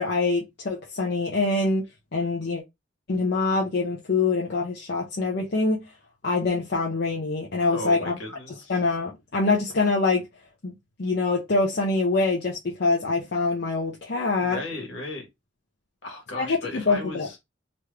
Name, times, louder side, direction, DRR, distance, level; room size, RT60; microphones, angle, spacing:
voice 1, 0.0-1.8 2.1-2.6 3.1-5.8 6.2-8.2 8.7-10.3 10.6-10.7 11.0-14.6 16.3-17.3, left 3 dB, 55° left, 0.7 m, -24 dB
voice 2, 7.7-8.8 14.4-15.3 16.0-17.4, left 2 dB, 75° left, 1.4 m, -35 dB
3.2 x 3.1 x 2.3 m
head